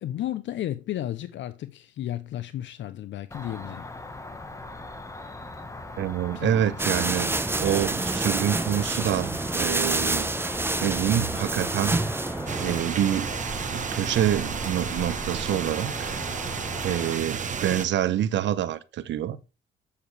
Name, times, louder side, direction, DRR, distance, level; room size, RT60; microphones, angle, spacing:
voice 1, 0.0-3.9 6.3-6.8, left 12 dB, 70° left, 0.6 m, -33 dB
Cricket, 3.3-17.2, left 2 dB, 15° left, 1.3 m, -40 dB
voice 2, 6.0-10.3 10.8-12.0 12.6-13.3 13.7-16.1 16.8-19.4, right 10 dB, 65° right, 0.8 m, -26 dB
sound 1, 6.8-12.8, right 2 dB, 10° right, 0.8 m, -27 dB
sound 2, 12.5-17.8, right 6 dB, 40° right, 1.1 m, -32 dB
8.4 x 6.9 x 3.3 m
cardioid pair, 90°, 20 cm